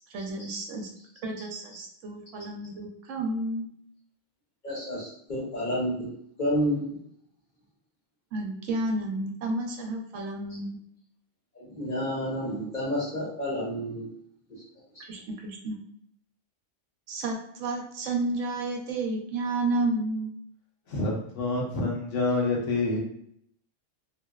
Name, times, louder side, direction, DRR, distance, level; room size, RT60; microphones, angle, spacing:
voice 1, 0.1-0.9 1.2-3.7 8.3-10.8 15.1-15.8 17.1-20.3, right 2 dB, 80° right, 2 dB, 0.9 m, -31 dB
voice 2, 4.6-7.0 11.5-14.1 14.5-14.6 14.9-15.1, equal, 45° left, -5 dB, 0.8 m, -30 dB
voice 3, 20.9-23.0, left 2 dB, 70° left, -3 dB, 1.0 m, -27 dB
2.8 x 2.0 x 2.2 m, 0.69 s
omnidirectional pair, 1.3 m